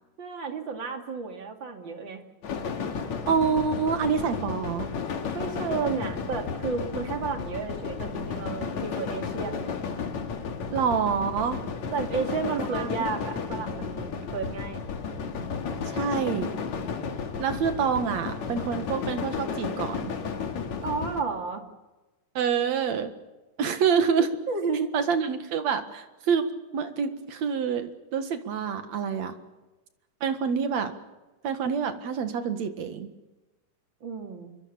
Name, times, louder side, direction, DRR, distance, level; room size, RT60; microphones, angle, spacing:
voice 1, 0.2-2.2 5.3-9.7 11.9-14.8 20.8-21.6 24.5-25.0 34.0-34.5, right 5 dB, 40° right, 4 dB, 2.9 m, -32 dB
sound 1, 2.4-21.2, left 5 dB, 60° left, 3.3 m, -33 dB
voice 2, 3.3-4.9 10.7-11.6 12.7-12.9 13.2-13.3 15.9-16.5 17.4-20.1 22.3-23.1 23.6-24.3 24.9-26.5 26.7-29.4 30.2-30.9 31.4-33.1, right 6 dB, 60° right, 8 dB, 2.8 m, -27 dB
26.0 x 23.5 x 6.9 m, 1.1 s
omnidirectional pair, 3.7 m